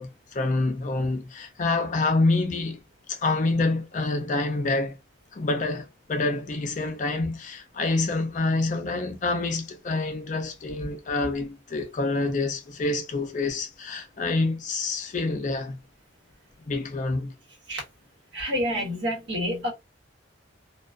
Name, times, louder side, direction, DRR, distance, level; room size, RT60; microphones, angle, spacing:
voice 1, 0.0-2.8 3.1-5.0 5.3-15.8 16.7-17.3, left 2 dB, 40° left, 0.4 m, -27 dB
voice 2, 18.3-19.7, equal, 60° right, 1.1 m, -28 dB
2.3 x 2.3 x 2.4 m
head